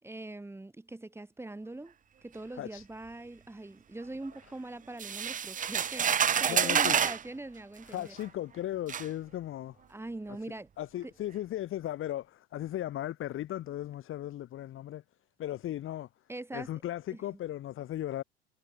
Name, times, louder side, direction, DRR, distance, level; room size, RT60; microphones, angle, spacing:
voice 1, 0.0-1.9 2.2-8.1 9.9-10.7 11.0-11.1 16.3-16.7 17.1-17.4, right 2 dB, 5° right, 5.6 m, -42 dB
voice 2, 2.5-2.9 6.5-7.0 7.8-9.8 10.8-15.0 15.4-16.1 16.5-18.2, left 13 dB, 40° left, 4.3 m, -36 dB
sound 1, 5.0-7.2 8.2-8.3 8.9-9.1, right 8 dB, 25° right, 1.5 m, -28 dB
figure-of-eight pair, 85°, 33 cm